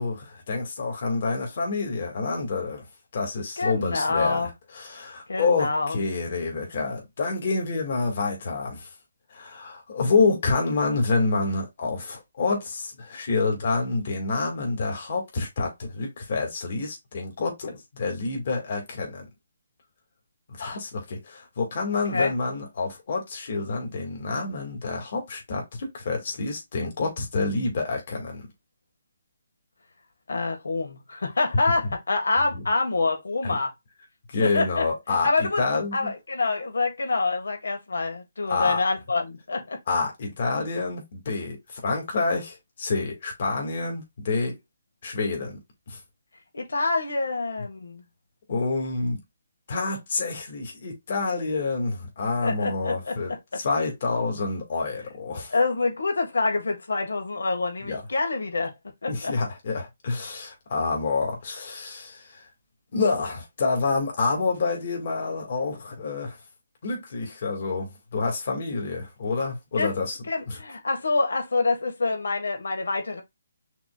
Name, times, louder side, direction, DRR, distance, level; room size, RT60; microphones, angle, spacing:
voice 1, 0.0-2.9 3.1-8.9 9.3-19.3 20.6-28.5 32.4-32.6 33.4-33.6 34.3-36.1 38.4-38.8 39.9-44.6 45.0-45.6 45.9-46.0 48.5-49.2 49.7-55.5 57.8-58.0 59.1-62.4 62.9-66.4 66.8-70.2 70.5-70.6, left 3 dB, 45° left, 2.0 m, -28 dB
voice 2, 3.6-4.5 5.3-6.0 22.1-22.3 30.3-33.7 34.4-34.8 35.2-35.6 35.9-39.8 46.5-48.0 52.4-53.1 55.5-58.7 59.0-59.3 69.8-69.9 70.3-73.2, left 3 dB, 90° left, 1.5 m, -26 dB
5.9 x 3.0 x 2.3 m
hypercardioid pair, 170°, 0 cm